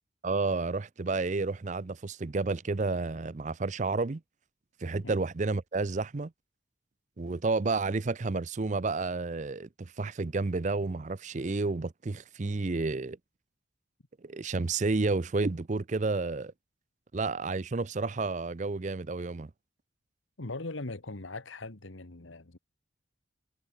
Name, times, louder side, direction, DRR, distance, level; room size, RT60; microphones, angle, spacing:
voice 1, 0.2-4.2 4.8-6.3 7.2-13.2 14.2-16.5 17.1-19.5, right 3 dB, 40° right, 0.5 m, -31 dB
voice 2, 20.4-22.6, left 2 dB, 75° left, 1.6 m, -40 dB
head